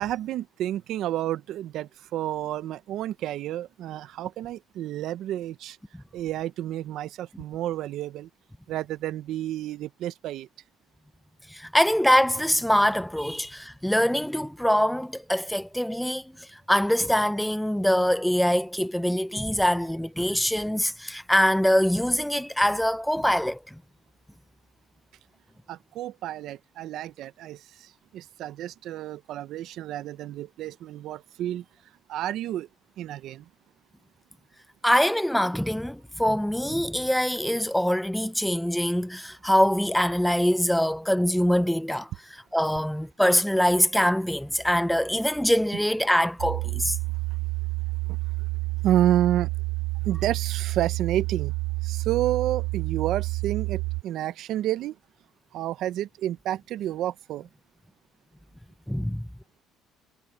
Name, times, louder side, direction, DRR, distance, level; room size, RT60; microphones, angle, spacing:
voice 1, 0.0-5.8 6.1-8.3 8.7-10.5 25.7-31.6 32.1-32.7 33.0-33.4 48.1-48.2 48.8-49.5 50.0-51.5 51.8-55.0 55.5-57.5, right 12 dB, 60° right, 0.7 m, -30 dB
voice 2, 11.5-23.8 34.8-42.1 42.5-47.0 58.9-59.2, equal, ahead, 0.6 m, -24 dB
sound 1, 46.4-54.0, right 24 dB, 80° right, 0.3 m, -29 dB
cardioid pair, 135°, 0 cm